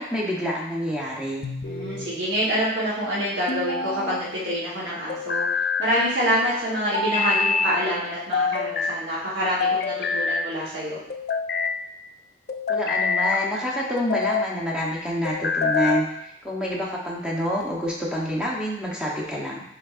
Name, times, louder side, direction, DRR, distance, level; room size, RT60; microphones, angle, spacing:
voice 1, 0.0-1.4 12.7-19.6, equal, 5° right, -4 dB, 0.8 m, -27 dB
sound 1, 1.4-2.1 3.5-4.3 5.1-5.9 6.9-7.7 8.3-9.0 9.6-10.5 11.1-11.8 12.5-13.4 14.0-14.5 15.3-16.1, left 4 dB, 55° left, 0.3 m, -25 dB
voice 2, 1.7-5.4 5.8-11.0, equal, 75° right, -7 dB, 1.2 m, -26 dB
6.3 x 3.4 x 2.4 m, 0.78 s
head